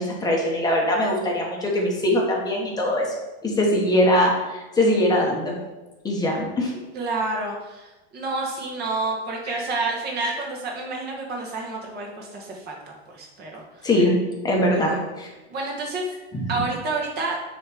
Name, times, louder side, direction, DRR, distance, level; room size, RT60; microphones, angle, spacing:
voice 1, 0.0-3.1 3.4-5.6 6.0-6.7 9.5-9.6 10.2-10.3 13.8-14.1 14.4-15.3 16.3-16.6, left 1 dB, 10° left, -1 dB, 0.9 m, -22 dB
voice 2, 6.9-12.8 13.1-13.9 14.7-15.1 15.5-16.1 16.5-17.4, right 3 dB, 30° right, 0 dB, 1.3 m, -29 dB
6.4 x 3.2 x 4.8 m, 1.1 s
supercardioid pair, 150°, 33 cm